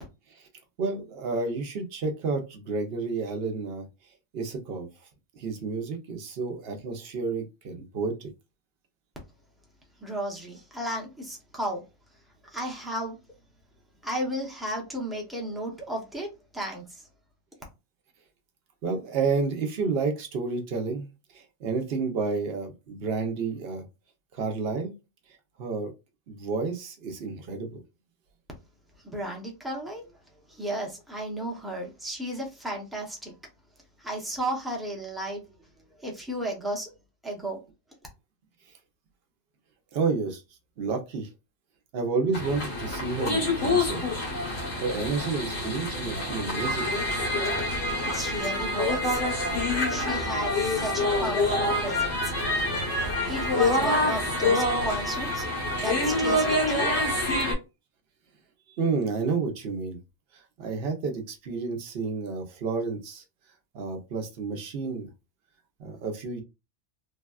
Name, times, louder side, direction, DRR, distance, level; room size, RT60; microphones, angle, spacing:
voice 1, 0.8-3.9 4.3-4.9 5.3-8.3 18.8-21.1 21.3-23.8 24.3-24.9 25.6-25.9 26.3-27.8 39.9-40.4 40.8-41.3 41.9-44.0 44.5-46.9 58.8-60.0 60.6-63.2 63.7-65.1 65.8-66.4, right 4 dB, 60° right, 0.8 m, -30 dB
voice 2, 10.0-11.8 12.4-13.2 14.0-16.3 16.5-17.0 29.0-30.0 30.5-33.3 34.0-35.4 36.0-36.9 37.2-37.6 48.0-49.2 49.9-52.3 53.3-56.9, right 1 dB, ahead, 0.6 m, -33 dB
sound 1, 42.3-57.5, left 2 dB, 85° left, 1.6 m, -26 dB
3.4 x 2.2 x 2.3 m
omnidirectional pair, 1.3 m